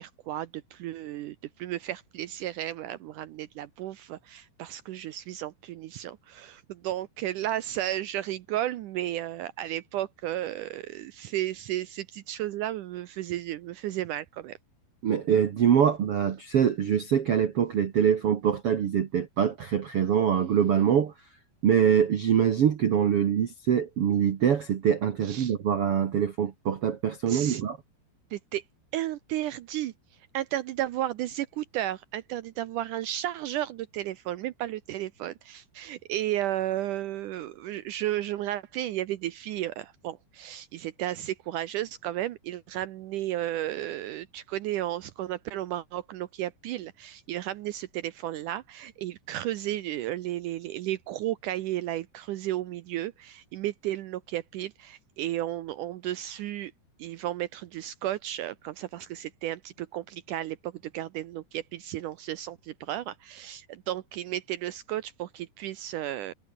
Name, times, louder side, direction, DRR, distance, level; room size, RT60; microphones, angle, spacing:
voice 1, 0.0-14.6 25.2-25.5 27.3-27.6 28.3-28.6 28.9-29.9 30.3-56.7 57.0-66.3, right 13 dB, 90° right, 1.8 m, -33 dB
voice 2, 15.0-21.1 21.6-27.8, right 8 dB, 70° right, 1.4 m, -24 dB
omnidirectional pair, 4.8 m